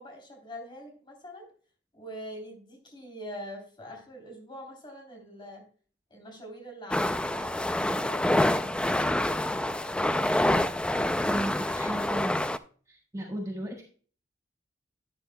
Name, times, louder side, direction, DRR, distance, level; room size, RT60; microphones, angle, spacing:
voice 1, 0.0-1.5 1.9-5.6 6.1-10.5, equal, 25° left, 2 dB, 3.4 m, -44 dB
sound 1, 6.9-12.6, left 1 dB, 5° left, 0.3 m, -27 dB
voice 2, 11.3-12.4 12.9-13.8, right 1 dB, 20° right, -1 dB, 1.4 m, -35 dB
11.5 x 9.7 x 2.2 m, 0.41 s
head